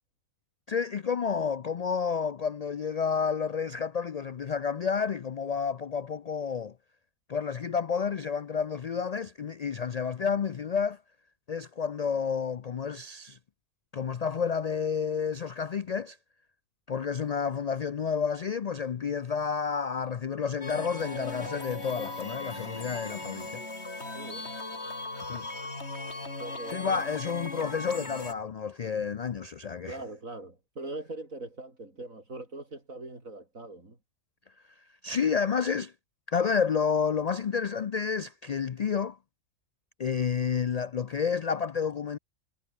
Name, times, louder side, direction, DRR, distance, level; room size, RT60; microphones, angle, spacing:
voice 1, 0.7-6.7 7.3-11.0 11.5-13.4 13.9-16.2 16.9-23.6 25.3-25.5 26.7-30.0 35.0-35.9 36.3-39.2 40.0-42.2, left 6 dB, 90° left, 0.3 m, -30 dB
sound 1, 20.6-28.3, left 2 dB, 55° left, 4.6 m, -38 dB
voice 2, 24.1-24.5 26.4-27.0 29.8-34.0, right 2 dB, 80° right, 5.8 m, -41 dB
omnidirectional pair, 1.4 m